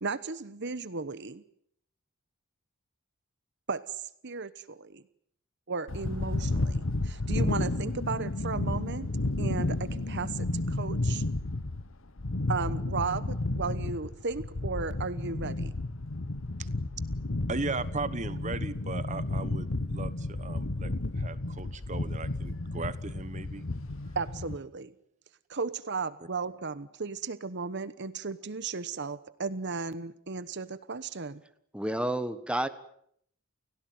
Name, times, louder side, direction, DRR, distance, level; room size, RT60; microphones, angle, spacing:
voice 1, 0.0-1.4 3.7-3.8 4.2-5.0 5.7-9.1 9.4-11.2 12.5-15.7 24.1-24.9 25.5-31.4, right 4 dB, 55° right, 15 dB, 1.1 m, -35 dB
sound 1, 5.9-24.6, left 2 dB, 65° left, 1.2 m, -32 dB
voice 2, 17.5-23.6, right 3 dB, 35° right, 15 dB, 1.2 m, -37 dB
voice 3, 31.7-32.7, right 1 dB, 5° right, 10 dB, 1.4 m, -30 dB
30.0 x 17.0 x 9.4 m, 0.70 s
head